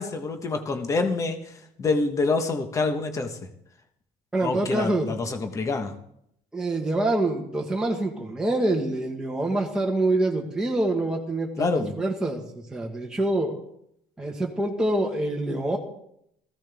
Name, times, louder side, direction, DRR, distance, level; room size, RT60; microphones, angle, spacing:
voice 1, 0.0-1.5 1.8-3.4 4.4-5.9 11.6-11.9, left 3 dB, 20° left, 6 dB, 1.3 m, -26 dB
voice 2, 4.3-5.1 6.5-11.7 12.0-13.5 14.2-15.8, right 2 dB, 5° right, -1 dB, 1.5 m, -26 dB
18.0 x 15.5 x 3.5 m, 0.72 s
cardioid pair, 175°, 14 cm